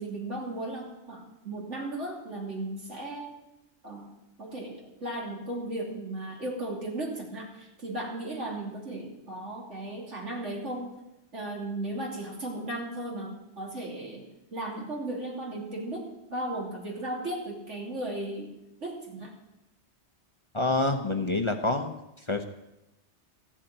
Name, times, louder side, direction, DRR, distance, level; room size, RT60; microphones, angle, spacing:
voice 1, 0.0-3.3 3.8-4.1 4.4-10.9 11.3-18.5 18.8-19.3, right 1 dB, 90° right, -2 dB, 3.4 m, -36 dB
voice 2, 20.5-21.9 22.3-22.4, left 2 dB, 30° left, 5 dB, 0.8 m, -27 dB
14.5 x 7.3 x 8.8 m, 0.92 s
omnidirectional pair, 1.2 m